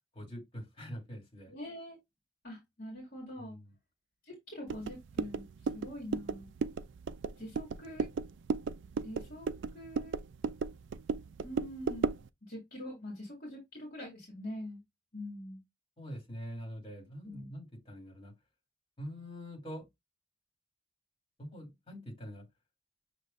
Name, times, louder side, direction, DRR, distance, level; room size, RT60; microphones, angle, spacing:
voice 1, 0.1-1.5 3.4-3.7 16.0-18.3 19.0-19.8 21.4-22.4, equal, 25° left, 2.9 m, -44 dB
voice 2, 1.5-2.0 2.4-3.6 4.2-5.4 5.7-6.5 7.4-8.1 9.0-10.2 11.4-12.1 12.4-14.8 15.1-15.6 17.2-17.5, left 1 dB, 45° left, 2.1 m, -44 dB
sound 1, 4.7-12.3, right 5 dB, 60° right, 0.3 m, -36 dB
6.7 x 3.1 x 2.5 m
head